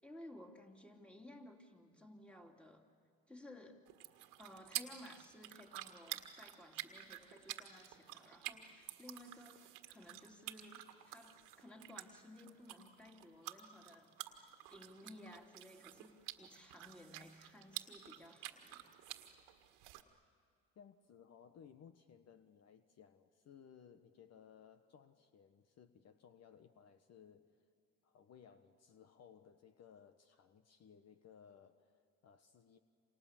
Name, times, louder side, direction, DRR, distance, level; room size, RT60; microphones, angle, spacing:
voice 1, 0.0-2.9 3.3-3.8 4.4-18.9, left 1 dB, 5° left, 2 dB, 3.1 m, -57 dB
sound 1, 3.9-20.0, right 15 dB, 85° right, 1.8 m, -50 dB
voice 2, 20.7-27.6 28.0-32.8, left 7 dB, 55° left, 9 dB, 1.3 m, -61 dB
28.5 x 27.0 x 7.4 m, 2.3 s
supercardioid pair, 75°, 31 cm